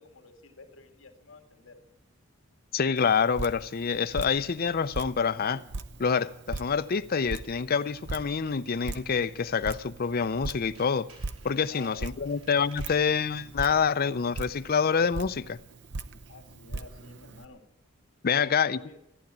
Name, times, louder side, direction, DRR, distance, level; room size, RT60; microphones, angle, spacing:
voice 1, 0.0-1.8 11.7-12.4 16.3-17.6 18.3-19.0, left 4 dB, 70° left, 2.0 m, -49 dB
voice 2, 2.7-5.6 6.0-11.1 11.4-15.6 18.2-18.8, left 6 dB, 45° left, 0.5 m, -27 dB
Drip, 3.0-17.5, right 3 dB, 60° right, 0.8 m, -41 dB
Tools, 10.3-13.1 13.6-13.9 14.2-14.3, right 3 dB, 85° right, 4.9 m, -56 dB
14.5 x 10.5 x 8.7 m
head